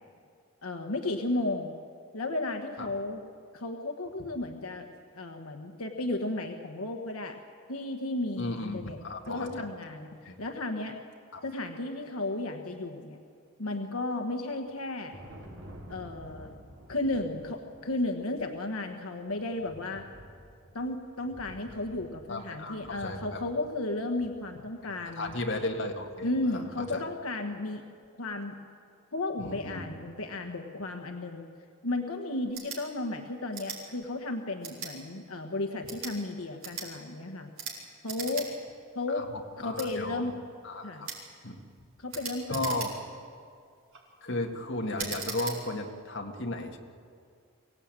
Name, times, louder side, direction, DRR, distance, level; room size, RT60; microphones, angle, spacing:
voice 1, 0.6-1.8 2.1-3.2 3.5-7.4 7.7-9.0 9.3-11.0 11.4-13.2 13.6-15.2 15.9-16.6 16.9-20.0 20.7-25.3 26.2-27.8 28.2-28.6 29.1-31.5 31.8-37.5 38.0-38.5 38.9-39.2 39.6-40.3 40.8-41.1 42.0-42.8 44.3-44.4, left 2 dB, 85° left, 4 dB, 1.3 m, -34 dB
voice 2, 8.4-9.7 10.2-10.4 11.3-11.4 22.3-23.4 24.8-26.6 26.9-27.0 29.4-29.9 39.1-39.3 39.6-40.3 40.6-41.1 41.4-41.6 42.5-42.9 44.2-46.8, left 2 dB, 60° left, 2 dB, 1.9 m, -34 dB
Thunder, 14.5-23.9, equal, 60° right, 4.3 m, -50 dB
sound 1, 32.5-32.8 33.5-33.8 34.6-34.9 35.7-36.2 36.6-36.9 37.5-37.8 38.0-38.5 38.8-38.9 39.7-39.9 41.0-41.2 42.1-43.2 43.7-44.0 45.0-45.6, right 5 dB, 80° right, 4.9 m, -39 dB
24.0 x 16.5 x 9.0 m, 2.3 s
head